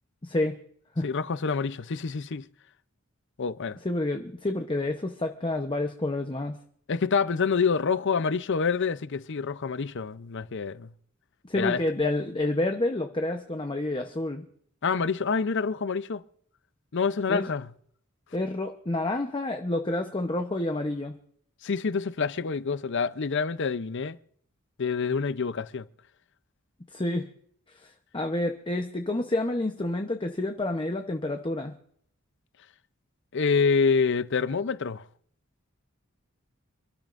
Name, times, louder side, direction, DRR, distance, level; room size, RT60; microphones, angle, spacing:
voice 1, 0.2-0.5 1.0-1.1 3.8-6.5 11.4-14.4 17.3-17.5 18.3-21.1 26.9-27.3 27.8-31.7, left 2 dB, 25° left, 0.9 m, -29 dB
voice 2, 1.0-2.4 3.4-3.8 6.9-10.9 11.5-11.8 14.8-16.2 16.9-17.7 21.6-24.2 24.8-25.9 33.3-35.0, left 5 dB, 60° left, 0.6 m, -27 dB
28.5 x 12.5 x 2.6 m
head